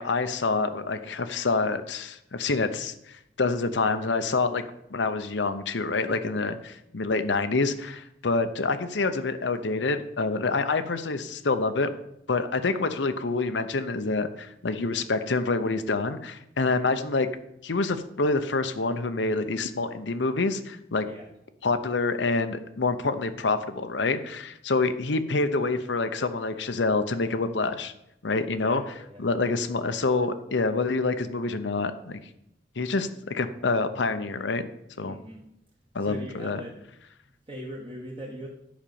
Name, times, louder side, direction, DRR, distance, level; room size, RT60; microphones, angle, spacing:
voice 1, 0.0-4.6 4.9-11.9 12.3-17.3 17.6-21.1 21.6-27.9 28.2-28.8 29.2-32.2 32.8-34.7 35.0-35.2 35.9-36.6, left 3 dB, 80° left, 10 dB, 0.8 m, -27 dB
voice 2, 6.1-6.4 21.1-21.2 28.6-29.2 35.1-35.4 36.0-36.8 37.5-38.5, equal, 30° right, -3 dB, 1.3 m, -41 dB
10.5 x 5.2 x 6.9 m, 0.80 s
head